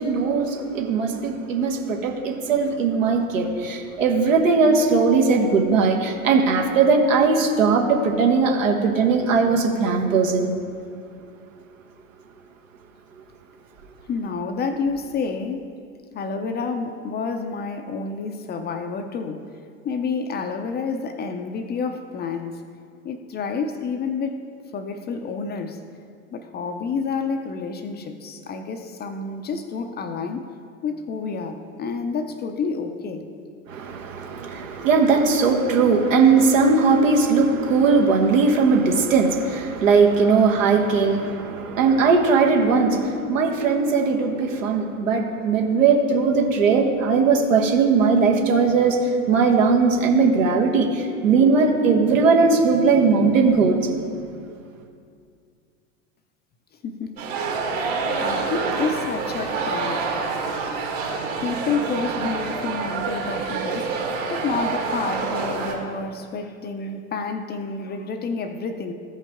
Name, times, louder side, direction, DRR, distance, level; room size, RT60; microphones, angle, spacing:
voice 1, 0.0-10.6 33.7-53.9, right 4 dB, 70° right, 2 dB, 1.3 m, -19 dB
voice 2, 14.1-15.7 16.1-19.5 19.8-22.6 23.0-24.4 24.7-25.8 26.3-30.4 30.8-33.3 56.8-57.2 58.1-60.1 61.4-64.0 64.3-68.9, left 4 dB, 25° left, 7 dB, 0.6 m, -29 dB
sound 1, 57.2-65.7, right 4 dB, 55° right, 2.0 m, -27 dB
14.0 x 5.4 x 3.6 m, 2.2 s
hypercardioid pair, 85°, 40 cm